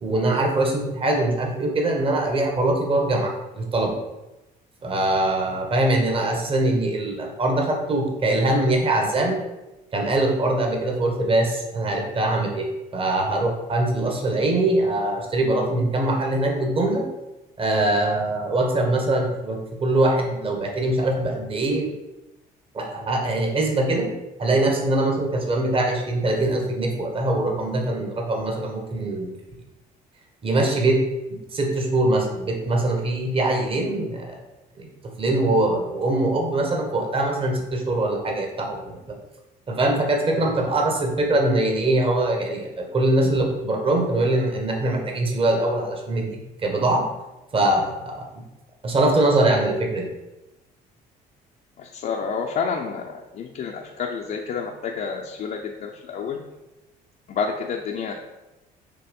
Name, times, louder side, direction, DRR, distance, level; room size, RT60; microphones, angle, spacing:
voice 1, 0.0-3.9 4.8-9.4 9.9-12.7 12.9-17.0 17.6-21.9 22.7-24.1 24.4-29.3 30.4-31.0 31.5-34.4 34.8-34.9 35.2-39.0 39.7-47.0 47.5-48.2 48.8-50.1, right 2 dB, 35° right, 1 dB, 1.4 m, -22 dB
voice 2, 51.8-56.4 57.3-58.1, left 6 dB, 55° left, 0 dB, 0.7 m, -29 dB
6.8 x 3.1 x 5.3 m, 1.0 s
cardioid pair, 110°, 17 cm